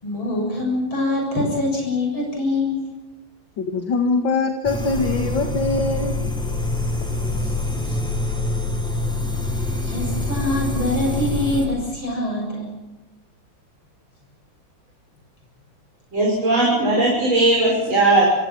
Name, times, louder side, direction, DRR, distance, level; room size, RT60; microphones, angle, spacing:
voice 1, 0.0-2.8 7.4-7.5 7.9-8.0 9.8-12.7, left 2 dB, 85° left, 0 dB, 8.0 m, -24 dB
voice 2, 3.6-6.1, left 3 dB, 70° left, 4 dB, 2.6 m, -22 dB
sound 1, 4.6-11.7, left 2 dB, ahead, 7.6 m, -25 dB
voice 3, 16.1-18.2, right 2 dB, 80° right, -3 dB, 7.0 m, -18 dB
29.0 x 25.5 x 6.1 m, 1.0 s
omnidirectional pair, 2.2 m